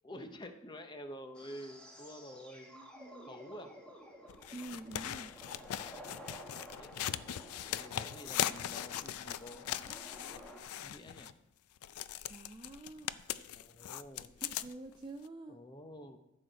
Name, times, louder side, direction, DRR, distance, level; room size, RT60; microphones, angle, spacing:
voice 1, 0.0-2.7 3.2-3.8 6.8-7.3 7.8-9.7 10.8-11.3 13.5-14.3 15.5-16.2, equal, 20° left, 7 dB, 0.7 m, -49 dB
sound 1, 1.3-10.6, equal, 5° left, 1.0 m, -53 dB
voice 2, 2.7-3.4 4.5-5.3 12.3-13.1 14.4-15.6, right 2 dB, 20° right, 4 dB, 0.3 m, -47 dB
sound 2, 4.3-11.3 11.8-14.9 15.2-15.3, left 11 dB, 90° left, 0.4 m, -40 dB
14.0 x 6.3 x 3.9 m, 0.86 s
head